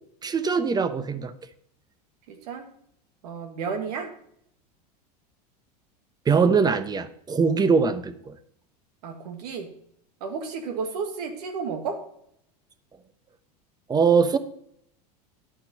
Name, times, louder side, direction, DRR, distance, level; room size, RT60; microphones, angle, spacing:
voice 1, 0.2-1.3 6.3-8.3 13.9-14.4, right 5 dB, 20° right, 12 dB, 0.9 m, -22 dB
voice 2, 2.3-2.7 3.2-4.1 9.0-9.7 10.2-12.0, right 5 dB, 70° right, 5 dB, 1.8 m, -32 dB
11.0 x 5.7 x 5.3 m, 0.70 s
hypercardioid pair, 95°, 21 cm